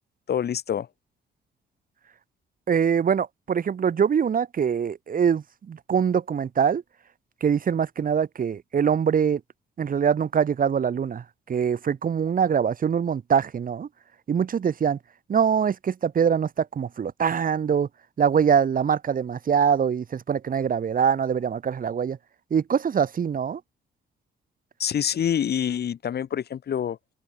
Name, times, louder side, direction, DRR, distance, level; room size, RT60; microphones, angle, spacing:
voice 1, 0.3-0.9 24.8-27.0, left 9 dB, 55° left, 1.7 m, -26 dB
voice 2, 2.7-6.8 7.4-9.4 9.8-13.9 14.3-15.0 15.3-17.9 18.2-22.2 22.5-23.6, right 7 dB, 45° right, 1.5 m, -23 dB
open air
cardioid pair, 90°, 20 cm